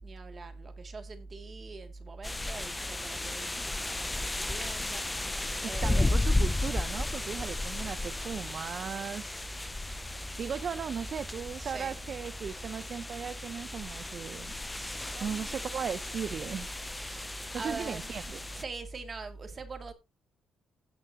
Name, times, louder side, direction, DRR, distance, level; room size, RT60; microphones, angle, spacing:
voice 1, 0.0-3.5 3.8-6.3 11.6-12.0 14.5-15.7 16.7-18.2 18.5-19.9, right 3 dB, 35° right, 2.5 m, -43 dB
sound 1, 2.2-18.6, left 2 dB, 15° left, 0.5 m, -34 dB
voice 2, 5.6-9.5 10.4-14.5 15.2-16.8 17.5-18.6, right 7 dB, 55° right, 0.7 m, -37 dB
16.5 x 6.6 x 2.9 m
cardioid pair, 90°, 0 cm